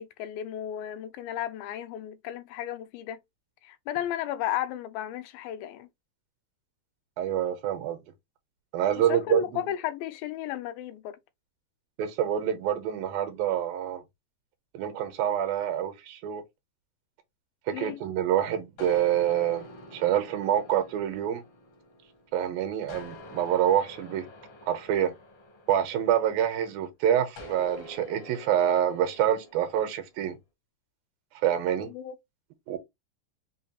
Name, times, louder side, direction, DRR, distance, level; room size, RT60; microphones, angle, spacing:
voice 1, 0.0-3.2 3.6-5.9 9.0-11.2 17.7-18.0 31.8-32.2, left 11 dB, 85° left, 2.4 m, -34 dB
voice 2, 7.2-8.0 8.7-9.7 12.0-14.0 14.7-16.4 17.7-19.7 19.9-21.4 22.3-24.3 24.7-25.2 25.7-30.4 31.4-31.9 32.7-32.8, right 10 dB, 85° right, 2.6 m, -26 dB
sound 1, 18.8-22.4 22.9-26.6 27.4-30.0, left 1 dB, 70° left, 1.3 m, -47 dB
5.8 x 2.3 x 2.8 m
omnidirectional pair, 4.1 m